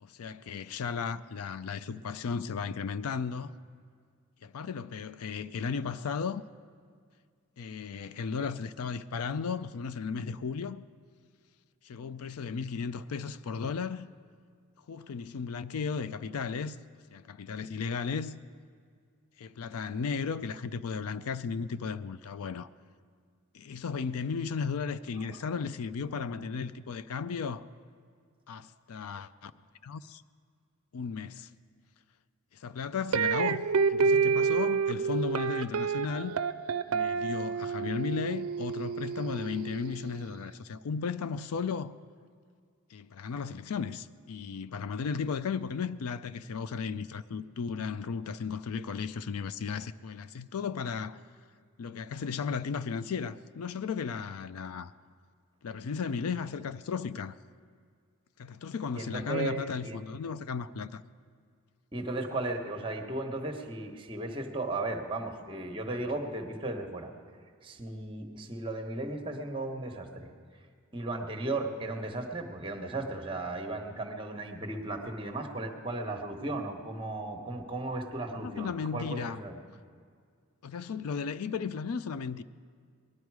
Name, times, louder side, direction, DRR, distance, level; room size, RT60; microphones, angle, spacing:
voice 1, 0.0-3.6 4.4-6.4 7.6-10.8 11.8-14.1 14.9-16.8 17.1-18.4 19.4-22.7 23.5-27.7 28.5-29.5 29.8-30.2 30.9-31.5 32.5-36.4 36.9-41.9 42.9-51.2 51.8-54.9 55.6-57.3 58.4-61.0 78.4-79.4 80.6-82.4, left 5 dB, 85° left, 0.4 m, -35 dB
sound 1, 33.1-40.2, right 5 dB, 75° right, 0.4 m, -29 dB
voice 2, 58.9-60.0 61.9-67.1 67.6-70.3 70.9-79.6, right 2 dB, 25° right, 1.1 m, -36 dB
19.0 x 12.0 x 4.7 m
head